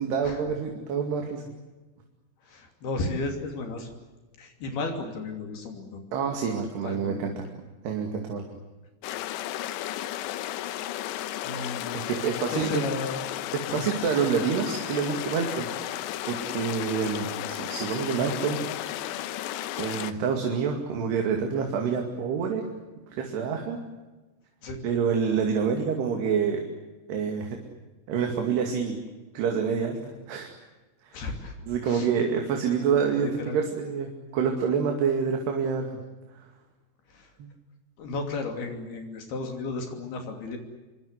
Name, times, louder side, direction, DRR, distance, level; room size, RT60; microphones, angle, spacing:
voice 1, 0.0-1.4 6.1-7.3 7.8-8.4 11.9-12.8 13.5-16.0 16.3-18.6 19.8-22.7 23.1-23.8 24.8-26.6 27.1-27.6 28.1-29.0 29.3-30.0 30.3-30.5 31.7-36.0 37.4-37.5, right 6 dB, 70° right, 3 dB, 4.5 m, -27 dB
voice 2, 2.4-3.9 4.4-6.0 6.8-7.5 10.2-10.6 11.4-13.2 13.7-13.9 24.6-24.8 31.1-31.5 31.8-32.1 33.4-33.6 37.1-37.3 38.0-40.6, left 3 dB, 65° left, 4 dB, 4.7 m, -34 dB
sound 1, 9.0-20.1, left 13 dB, 85° left, 3.3 m, -34 dB
27.5 x 23.5 x 8.2 m, 1.2 s
omnidirectional pair, 4.9 m